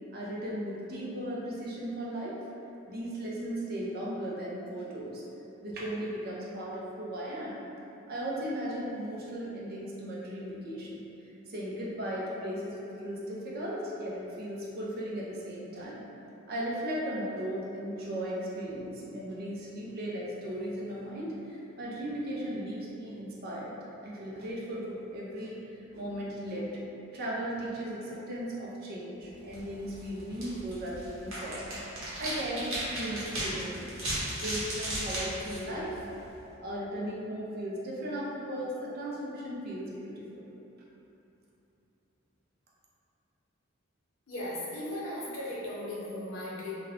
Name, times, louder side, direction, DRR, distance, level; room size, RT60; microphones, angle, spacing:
voice 1, 0.1-2.4 2.9-5.2 5.6-7.6 8.1-11.0 11.5-16.1 16.5-23.7 24.0-26.7 27.1-31.6 32.1-33.9 34.3-36.0 36.6-40.4, equal, 45° right, -5 dB, 0.4 m, -36 dB
sound 1, 29.4-36.4, right 1 dB, 75° right, 0.8 m, -37 dB
voice 2, 44.3-46.7, left 1 dB, 70° left, -6 dB, 0.7 m, -37 dB
2.3 x 2.1 x 3.5 m, 2.9 s
head